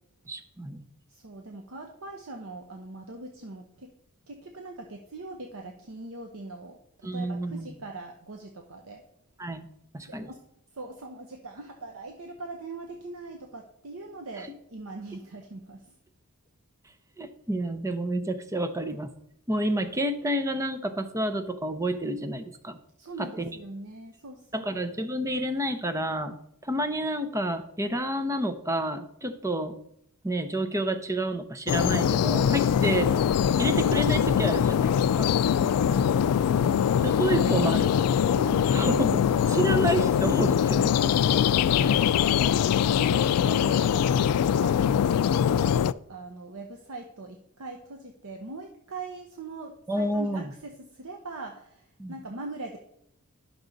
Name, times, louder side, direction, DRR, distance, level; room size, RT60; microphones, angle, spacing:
voice 1, 0.3-0.8 7.0-7.8 9.4-9.7 9.9-10.3 17.2-19.1 19.5-22.8 23.2-23.6 24.5-26.3 26.6-29.8 30.2-33.1 33.6-35.3 37.0-37.9 38.7-40.9 41.8-42.0 49.9-50.5 52.0-52.2, right 1 dB, 15° right, 10 dB, 0.6 m, -29 dB
voice 2, 1.1-3.9 4.3-9.0 10.0-10.4 10.7-16.0 23.0-24.8 35.4-37.1 37.5-39.2 39.5-39.9 41.0-52.8, right 2 dB, 65° right, 3 dB, 0.8 m, -41 dB
sound 1, 31.7-45.9, left 8 dB, 80° left, 0.3 m, -23 dB
11.0 x 6.1 x 3.9 m, 0.74 s
head